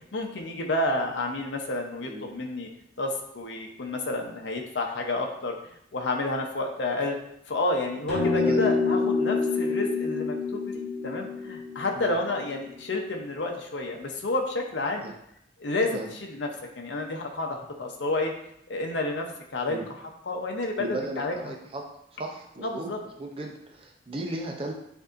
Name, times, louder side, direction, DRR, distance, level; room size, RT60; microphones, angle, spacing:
voice 1, 0.1-2.7 3.0-5.6 5.9-7.2 7.5-15.0 15.6-16.5 16.8-18.3 18.7-19.2 19.5-19.8 20.3-21.5 22.6-23.0, left 2 dB, 80° left, 2 dB, 0.7 m, -30 dB
voice 2, 2.0-2.3 8.5-8.7 12.0-12.1 15.0-15.1 15.9-16.1 19.7-19.9 20.8-21.8 22.1-22.9 23.2-24.7, right 2 dB, 30° right, 1 dB, 0.6 m, -35 dB
sound 1, 8.1-12.6, left 4 dB, 5° left, 1.3 m, -27 dB
7.8 x 2.7 x 2.5 m, 0.74 s
head